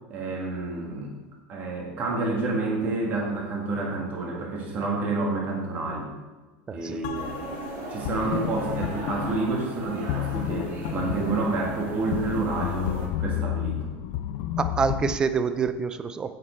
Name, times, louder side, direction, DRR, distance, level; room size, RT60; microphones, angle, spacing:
voice 1, 0.1-1.1 1.5-6.1 6.7-7.4 7.9-13.9, right 3 dB, 30° right, -1 dB, 1.9 m, -29 dB
voice 2, 6.7-7.0 14.6-16.3, right 5 dB, 15° right, 11 dB, 0.4 m, -26 dB
sound 1, 7.0-15.2, left 11 dB, 50° left, 0.5 m, -32 dB
sound 2, 7.1-13.1, right 2 dB, 45° right, 1.9 m, -38 dB
8.3 x 7.4 x 4.4 m, 1.2 s
supercardioid pair, 175°, 6 cm